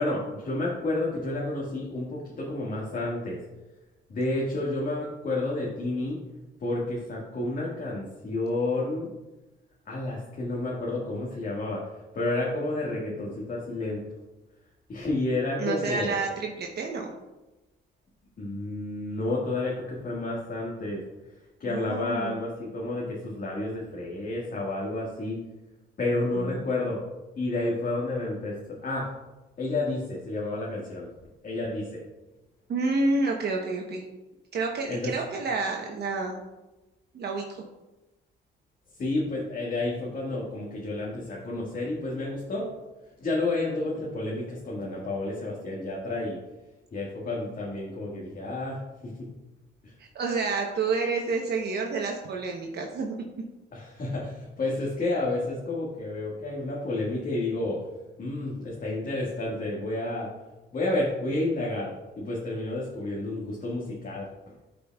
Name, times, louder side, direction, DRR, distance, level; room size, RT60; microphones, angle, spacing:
voice 1, 0.0-3.4 4.1-6.2 6.6-9.1 9.9-11.8 12.1-14.0 14.9-16.2 18.4-21.0 21.6-25.4 26.0-27.0 27.3-28.5 28.8-29.1 29.6-31.1 31.4-32.0 34.9-35.1 39.0-42.7 43.2-46.4 46.9-49.3 49.8-49.9 53.7-57.8 58.2-60.3 60.7-64.3, left 2 dB, 45° left, -5 dB, 1.7 m, -30 dB
voice 2, 15.6-17.1 21.7-22.3 26.4-26.5 32.7-34.0 34.5-36.4 37.1-37.6 50.0-53.2, right 3 dB, 55° right, 1 dB, 0.9 m, -29 dB
12.0 x 5.1 x 2.3 m, 1.1 s
cardioid pair, 90°, 20 cm